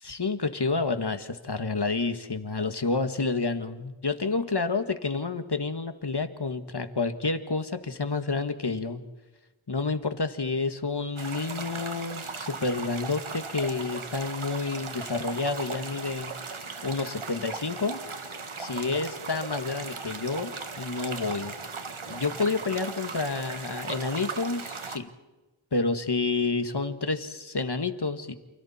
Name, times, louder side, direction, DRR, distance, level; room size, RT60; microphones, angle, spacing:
voice 1, 0.0-9.0 9.7-16.3 16.8-18.0 18.6-21.5 22.1-25.1 25.7-28.3, left 3 dB, 55° left, 9 dB, 1.7 m, -29 dB
sound 1, 11.2-25.0, right 4 dB, 75° right, 1.7 m, -38 dB
29.5 x 29.0 x 4.3 m, 1.2 s
wide cardioid pair, 50°, 49 cm